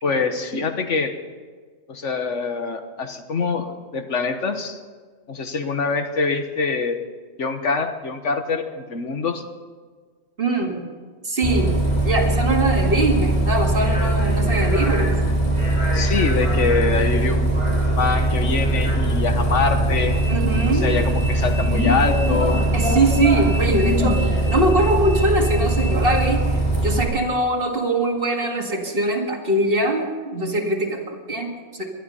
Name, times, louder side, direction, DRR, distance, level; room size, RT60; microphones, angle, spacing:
voice 1, 0.0-1.1 1.9-4.8 5.3-7.0 7.4-9.4 15.9-17.6 18.0-20.2 20.7-22.7, left 4 dB, 70° left, 7 dB, 1.5 m, -24 dB
voice 2, 10.4-10.8 11.2-11.7 12.0-15.2 20.3-20.9 22.7-31.9, right 2 dB, 45° right, 2 dB, 2.2 m, -22 dB
Bus, 11.4-27.0, right 1 dB, 25° left, 3.4 m, -21 dB
19.5 x 12.5 x 5.5 m, 1.5 s
omnidirectional pair, 1.3 m